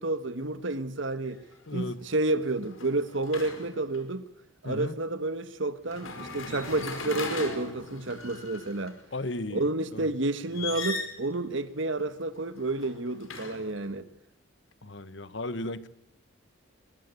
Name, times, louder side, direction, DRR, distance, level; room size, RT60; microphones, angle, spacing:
voice 1, 0.0-1.4 1.7-4.2 4.6-9.0 9.5-14.1, right 2 dB, 70° right, 1.3 m, -30 dB
sound 1, 1.3-1.5 1.9-4.0 5.8-8.9 10.4-11.3 12.5-13.9, left 3 dB, 85° left, 5.1 m, -38 dB
voice 2, 1.7-2.0 4.6-4.9 9.1-10.1 14.8-15.9, left 2 dB, 60° left, 1.3 m, -35 dB
24.5 x 21.5 x 8.3 m
head